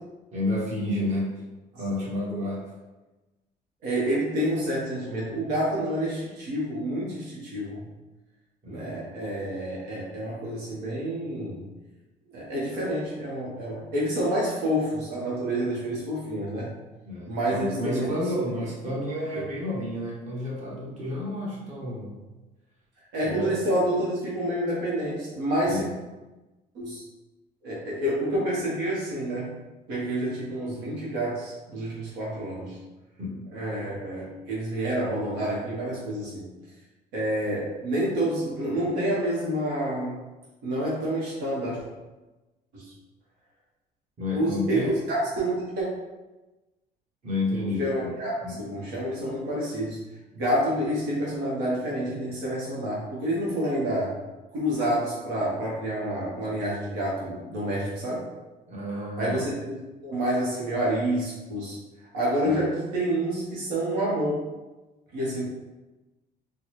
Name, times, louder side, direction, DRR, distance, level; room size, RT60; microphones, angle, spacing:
voice 1, 0.3-1.3 1.8-2.6 8.6-9.1 17.0-22.2 23.2-23.6 25.6-25.9 33.2-33.5 44.2-44.9 47.2-48.7 58.7-59.4 62.4-62.6, left 1 dB, 45° right, -6 dB, 1.4 m, -31 dB
voice 2, 3.8-7.8 8.7-11.7 12.3-16.7 17.3-18.3 19.3-19.4 23.1-25.9 26.7-27.0 27.6-29.6 29.9-32.8 33.5-36.5 37.1-40.2 40.6-41.8 42.7-42.9 44.3-45.9 47.7-50.0 50.3-54.1 54.5-58.3 59.2-61.8 62.1-64.4 65.1-65.5, right 1 dB, 85° right, -5 dB, 1.0 m, -28 dB
4.0 x 2.2 x 3.0 m, 1.1 s
cardioid pair, 110°, 17 cm